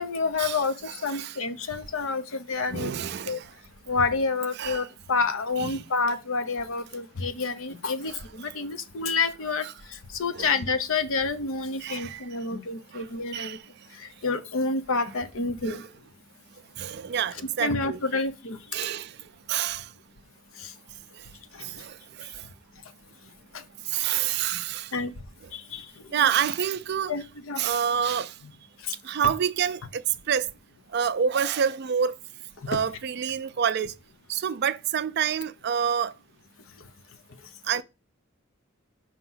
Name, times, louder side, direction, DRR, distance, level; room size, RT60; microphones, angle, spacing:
voice 1, 0.0-0.7 1.0-2.9 3.3-3.4 3.9-9.7 10.1-13.6 14.2-15.8 17.6-18.6 24.9-25.1 25.5-25.8 27.1-27.6 32.7-32.8, left 4 dB, 70° left, 0.7 m, -28 dB
voice 2, 0.9-1.4 2.7-3.5 4.6-4.9 5.6-5.8 8.1-8.2 10.3-10.5 11.8-12.2 12.9-13.0 13.3-13.6 15.6-15.9 16.8-18.0 18.7-19.1 19.5-19.9 21.6-22.3 23.9-24.9 26.1-27.1 27.6-28.3 29.0-30.0 30.3-30.5 30.9-32.2 32.7-33.9 34.3-36.1 37.7-37.8, right 8 dB, 50° right, 0.4 m, -27 dB
5.8 x 2.9 x 5.5 m
head